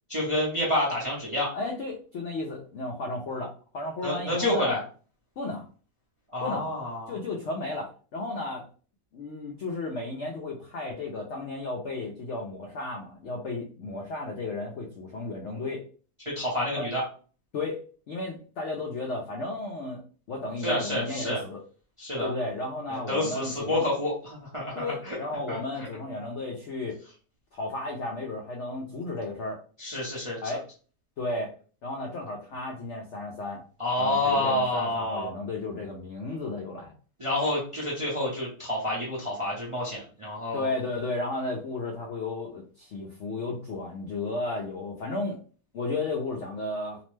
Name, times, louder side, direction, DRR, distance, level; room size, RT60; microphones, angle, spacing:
voice 1, 0.1-1.5 4.0-4.8 6.3-7.2 16.4-17.0 20.6-21.4 22.0-22.3 23.1-24.7 25.1-25.2 25.5-25.6 29.8-30.4 33.8-35.3 37.2-40.7, left 1 dB, 35° right, -5 dB, 0.5 m, -28 dB
voice 2, 1.5-4.8 5.4-5.6 6.4-6.7 7.1-8.6 9.1-15.9 16.8-16.9 17.5-21.6 22.2-23.8 24.7-27.0 27.5-29.6 30.4-30.6 31.2-31.5 31.8-33.6 34.0-36.9 40.5-45.4 45.7-47.0, left 2 dB, 75° left, 0 dB, 0.6 m, -34 dB
2.8 x 2.1 x 3.1 m, 0.39 s
omnidirectional pair, 1.8 m